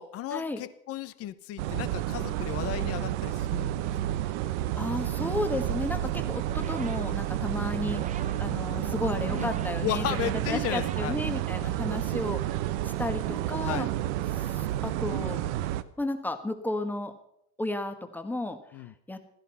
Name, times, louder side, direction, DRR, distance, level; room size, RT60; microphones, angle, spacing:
voice 1, 0.0-3.9 8.3-9.5 9.8-11.1 13.6-13.9 18.7-18.9, left 12 dB, 40° left, 15 dB, 1.0 m, -35 dB
sound 1, 1.6-15.8, right 13 dB, 80° right, 1.0 m, -30 dB
voice 2, 4.5-8.0 8.4-13.9 14.3-15.4 16.0-17.1 17.6-18.6 19.1-19.2, left 2 dB, 5° left, 7 dB, 1.5 m, -33 dB
sound 2, 6.2-12.0, right 8 dB, 20° right, 0.7 m, -46 dB
16.0 x 13.5 x 5.6 m, 0.70 s
cardioid pair, 140°, 35 cm